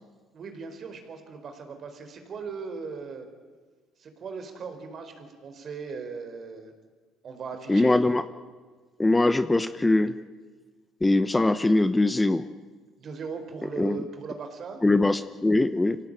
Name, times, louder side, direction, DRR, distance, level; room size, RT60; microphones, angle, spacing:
voice 1, 0.3-3.3 4.0-6.7 7.2-8.0 13.0-14.8, right 5 dB, 50° right, 6 dB, 4.7 m, -38 dB
voice 2, 7.7-8.2 9.0-10.2 11.0-12.4 13.8-14.0 14.8-16.0, left 2 dB, 15° left, 12 dB, 1.0 m, -22 dB
25.0 x 17.5 x 9.1 m, 1.4 s
supercardioid pair, 85°, 0 cm